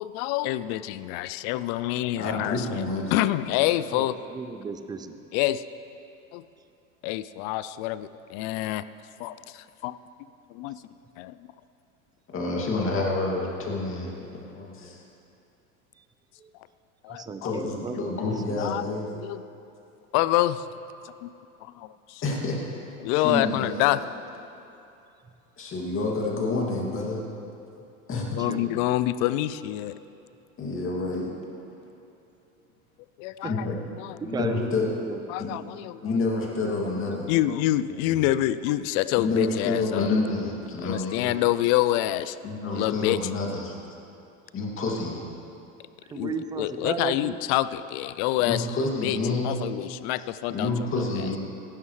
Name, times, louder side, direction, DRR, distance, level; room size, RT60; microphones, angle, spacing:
voice 1, 0.0-2.8 3.1-4.2 5.3-5.6 6.3-6.4 7.0-8.8 9.2-9.9 10.2-10.8 11.2-11.4 17.0-17.5 17.9-18.0 18.6-18.8 19.1-19.4 20.1-20.7 21.2-21.3 21.6-22.2 23.0-24.0 28.4-30.0 33.2-33.7 34.0-34.2 35.3-36.2 37.1-40.1 40.8-42.4 42.8-43.2 46.1-48.7 49.0-49.2 49.4-50.9, left 14 dB, 45° left, 15 dB, 0.5 m, -27 dB
voice 2, 2.2-3.1 12.3-15.0 17.4-19.0 22.2-22.8 23.1-24.0 25.6-27.2 28.1-28.4 30.6-31.3 33.4-33.8 34.2-34.9 35.4-35.5 36.0-37.3 38.0-38.3 39.2-41.3 42.4-43.8 44.5-45.2 48.4-49.5 50.5-51.4, left 3 dB, 30° left, -2 dB, 2.4 m, -28 dB
voice 3, 3.9-5.2 16.0-16.1 16.4-16.5 17.1-18.1 18.5-18.6 19.5-19.6 28.4-28.8 33.4-33.5 34.2-35.2 46.0-47.4, right 5 dB, 10° right, 9 dB, 0.4 m, -35 dB
15.5 x 11.5 x 3.3 m, 2.7 s
hypercardioid pair, 105°, 42 cm